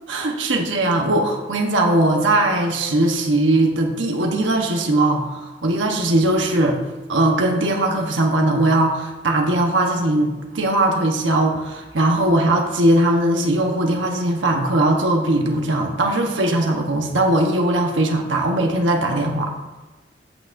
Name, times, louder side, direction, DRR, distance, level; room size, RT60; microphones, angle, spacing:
voice 1, 0.1-6.8 7.1-19.5, right 1 dB, 90° right, 1 dB, 1.1 m, -19 dB
14.5 x 6.0 x 2.6 m, 1.1 s
head